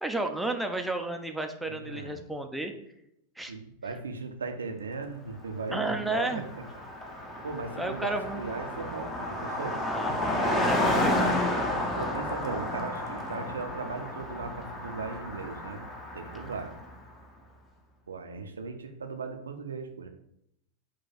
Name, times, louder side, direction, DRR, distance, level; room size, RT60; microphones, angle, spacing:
voice 1, 0.0-2.7 3.4-3.5 5.7-6.4 7.8-8.4 9.7-11.5, right 2 dB, 5° right, 5 dB, 0.4 m, -32 dB
voice 2, 1.6-2.2 3.5-6.4 7.4-9.8 12.0-15.8 16.1-16.7 18.1-20.1, right 4 dB, 70° right, 6 dB, 0.4 m, -37 dB
Car passing by, 5.6-5.7 5.9-16.9, left 1 dB, 15° left, 0.7 m, -31 dB
4.2 x 2.2 x 4.1 m, 0.76 s
figure-of-eight pair, 90°, 0 cm